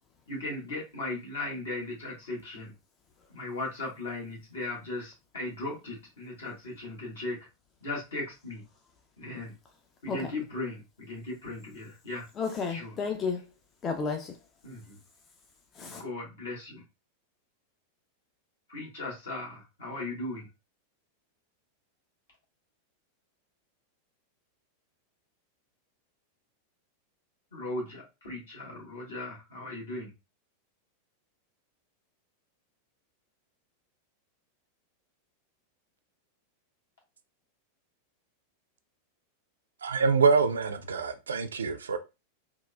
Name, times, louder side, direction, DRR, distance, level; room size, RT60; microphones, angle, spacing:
voice 1, 0.3-2.7 3.3-7.4 7.8-8.6 9.2-9.5 10.0-12.3 12.7-12.9 14.6-15.0 15.8-16.8 18.7-20.5 27.5-30.1, left 2 dB, 65° left, 1.4 m, -37 dB
voice 2, 12.4-13.5 13.8-14.4 15.8-16.0, left 5 dB, 25° left, 0.4 m, -32 dB
voice 3, 39.8-42.0, right 5 dB, 70° right, 0.4 m, -25 dB
3.6 x 2.3 x 2.2 m
figure-of-eight pair, 90°, 0 cm